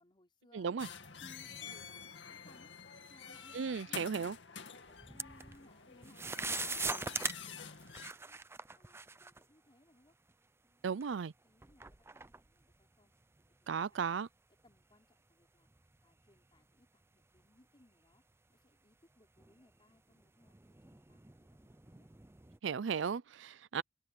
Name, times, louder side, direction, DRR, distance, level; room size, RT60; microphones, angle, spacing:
voice 1, 0.0-2.7 3.1-4.3 4.7-7.2 7.4-8.4 8.8-10.1 10.6-13.1 13.5-14.2 14.6-15.7 16.0-18.2 18.5-22.1, left 1 dB, 25° left, 4.5 m, -66 dB
voice 2, 0.5-0.9 3.5-4.4 10.8-11.3 13.7-14.3 22.6-23.8, right 6 dB, 90° right, 0.5 m, -35 dB
sound 1, 0.8-8.1, left 7 dB, 70° left, 2.3 m, -47 dB
sound 2, 4.8-5.7 6.0-9.5 10.3-10.4 11.0-13.6 14.0-14.1 14.7-15.0 15.4-17.6 18.1-18.2 19.2-22.6, right 4 dB, 15° right, 0.5 m, -43 dB
open air
head